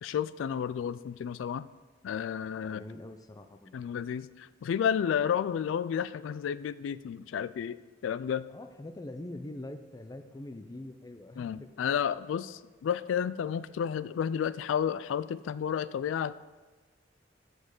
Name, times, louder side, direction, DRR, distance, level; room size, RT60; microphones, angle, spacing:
voice 1, 0.0-1.7 2.0-2.8 3.7-8.4 11.4-16.3, left 8 dB, 80° left, 17 dB, 0.3 m, -31 dB
voice 2, 2.6-3.7 8.5-11.7, left 1 dB, 20° left, 8 dB, 0.5 m, -43 dB
5.9 x 5.3 x 6.6 m, 1.3 s
head